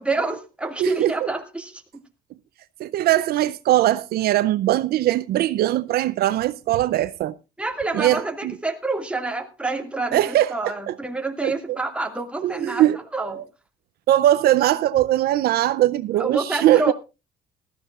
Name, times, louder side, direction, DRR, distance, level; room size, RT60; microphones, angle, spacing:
voice 1, 0.0-2.0 7.6-13.4 16.2-16.9, right 3 dB, 5° right, 2.0 m, -28 dB
voice 2, 0.8-1.1 2.8-7.3 7.9-8.5 10.1-10.9 11.4-11.8 12.4-13.4 14.1-16.9, right 14 dB, 70° right, 0.5 m, -21 dB
19.0 x 13.5 x 2.4 m
cardioid pair, 110°, 17 cm